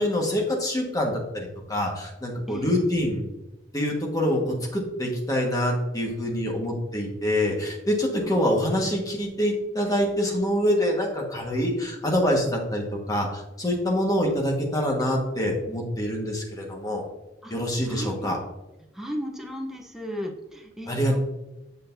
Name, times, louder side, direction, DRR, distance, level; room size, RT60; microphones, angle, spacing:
voice 1, 0.0-3.2 3.7-17.0 17.5-18.4 20.9-21.2, equal, 20° left, 0 dB, 1.4 m, -25 dB
voice 2, 2.5-2.9 8.2-8.5 17.4-17.6 17.9-18.4 18.9-21.2, equal, ahead, 0 dB, 0.7 m, -35 dB
8.2 x 6.5 x 2.6 m, 0.95 s
head